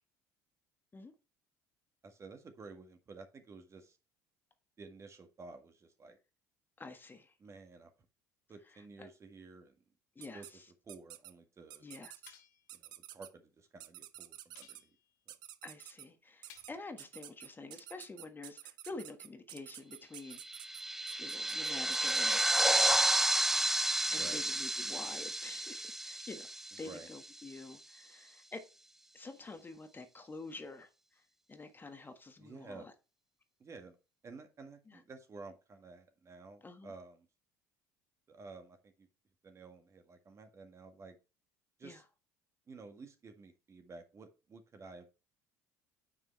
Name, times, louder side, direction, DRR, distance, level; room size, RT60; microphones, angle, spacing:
voice 1, 2.0-4.0 4.8-6.2 7.4-7.9 8.5-9.8 10.3-11.9 12.7-14.9 24.1-24.4 26.8-27.1 32.4-32.9 33.6-34.0 34.2-37.3 38.3-39.1 39.4-41.2 41.8-42.0 42.7-45.1, right 4 dB, 35° right, 1.7 m, -52 dB
voice 2, 6.8-7.3 9.0-9.1 10.1-10.7 11.8-12.4 15.6-20.4 21.2-22.4 24.1-26.5 26.8-28.7 29.1-32.9 34.9-35.0 36.6-36.9 41.8-42.0, left 3 dB, 20° left, 1.5 m, -48 dB
sound 1, 10.2-10.5 10.9-11.3 11.7-12.3 12.7-13.3 13.8-14.8 15.3-16.1 16.4-16.7 17.0-22.6, right 13 dB, 55° right, 0.7 m, -50 dB
sound 2, 12.3-12.7 14.5-15.2 16.5-16.9, left 9 dB, 70° left, 1.4 m, -59 dB
sound 3, 20.4-27.3, right 1 dB, 5° right, 0.4 m, -31 dB
9.4 x 5.4 x 3.3 m
figure-of-eight pair, 60°, 9 cm